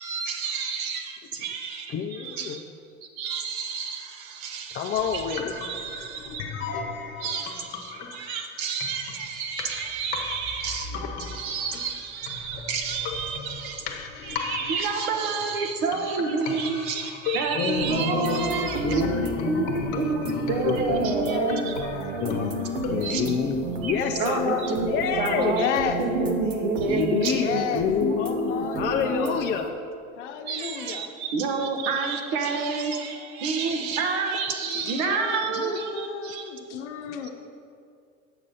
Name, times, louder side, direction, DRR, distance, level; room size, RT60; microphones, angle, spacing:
voice 1, 0.0-2.6 3.0-6.4 7.2-21.9 23.0-23.2 23.8-23.9 24.2-24.9 25.2-25.7 26.0-27.7 30.5-36.5 37.2-37.3, right 5 dB, 55° right, 4 dB, 1.1 m, -29 dB
voice 2, 1.9-2.6 4.7-5.5 17.5-21.1 22.2-24.4 24.9-25.6 26.9-29.7 33.8-33.9, left 7 dB, 30° left, 3 dB, 0.5 m, -29 dB
sound 1, 4.9-22.9, left 5 dB, 50° left, 1.1 m, -37 dB
sound 2, 17.8-29.7, right 2 dB, 85° right, 0.9 m, -31 dB
voice 3, 18.3-22.6 22.9-23.6 24.2-25.1 25.3-27.9 28.2-29.4 30.2-31.1 34.6-37.3, left 7 dB, 70° left, 4 dB, 0.8 m, -34 dB
7.9 x 6.1 x 5.6 m, 2.4 s
hypercardioid pair, 80°, 36 cm